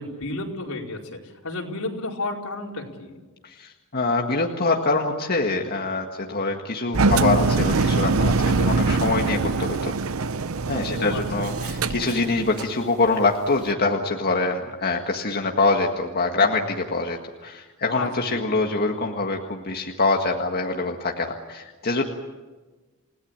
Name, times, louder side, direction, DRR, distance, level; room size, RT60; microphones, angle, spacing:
voice 1, 0.0-3.2 10.9-11.4 17.9-18.6, left 2 dB, 80° left, 0 dB, 4.7 m, -32 dB
voice 2, 3.4-9.9 10.7-22.0, left 3 dB, 45° left, 1 dB, 1.8 m, -24 dB
Engine, 6.9-12.8, right 3 dB, 70° right, 0.8 m, -23 dB
29.5 x 17.5 x 8.9 m, 1.3 s
head